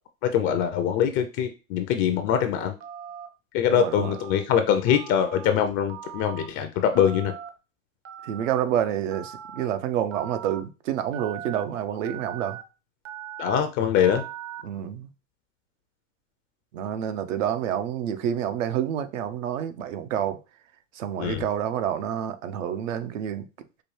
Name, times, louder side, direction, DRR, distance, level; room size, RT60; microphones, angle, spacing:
voice 1, 0.2-2.8 3.5-7.3 13.4-14.2 21.2-21.4, left 9 dB, 30° left, 0.4 m, -23 dB
Telephone, 2.8-3.3 3.8-4.4 4.9-5.5 5.9-6.5 6.9-7.5 8.0-8.6 9.1-9.7 10.1-10.6 11.1-11.6 12.0-12.6 13.0-13.6 14.0-14.6, right 10 dB, 35° right, 0.6 m, -40 dB
voice 2, 3.7-4.2 8.2-12.6 14.6-15.1 16.7-20.4 20.9-23.5, right 10 dB, 70° right, 0.7 m, -28 dB
4.8 x 2.3 x 3.1 m
hypercardioid pair, 110°, 39 cm